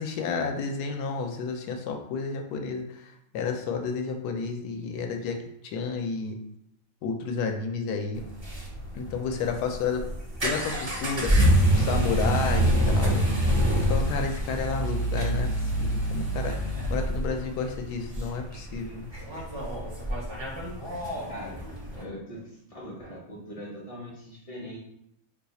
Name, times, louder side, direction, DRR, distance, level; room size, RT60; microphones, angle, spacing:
voice 1, 0.0-5.4 5.6-6.4 7.0-8.2 8.9-10.1 10.4-13.3 13.8-19.1, left 5 dB, 90° left, 4 dB, 1.1 m, -31 dB
sound 1, 8.2-22.0, right 1 dB, 40° right, 0.4 m, -26 dB
voice 2, 21.3-24.8, equal, 45° left, -3 dB, 0.4 m, -41 dB
2.9 x 2.3 x 4.0 m, 0.76 s
omnidirectional pair, 1.7 m